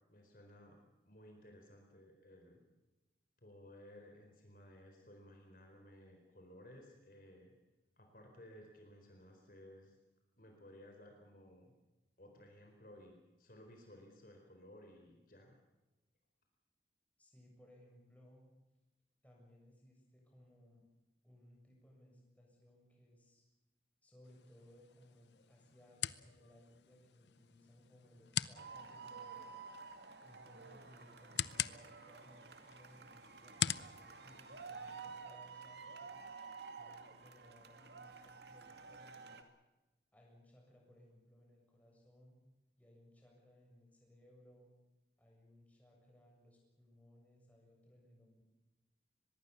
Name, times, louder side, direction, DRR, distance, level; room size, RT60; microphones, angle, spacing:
voice 1, 0.1-0.8 1.1-2.6 3.4-7.5 8.0-10.0 10.4-11.7 12.2-15.6, left 1 dB, 50° left, 2 dB, 4.3 m, -58 dB
voice 2, 17.2-18.5 19.2-20.8 21.2-23.5 24.0-29.6 30.2-36.1 36.7-39.4 40.1-42.4 42.8-44.7 45.2-48.4, left 1 dB, 10° left, -1 dB, 7.3 m, -63 dB
sound 1, 24.2-35.2, left 10 dB, 80° left, 0.7 m, -44 dB
sound 2, 28.5-39.4, right 5 dB, 70° right, 2.4 m, -52 dB
24.5 x 21.5 x 7.0 m, 1.1 s
head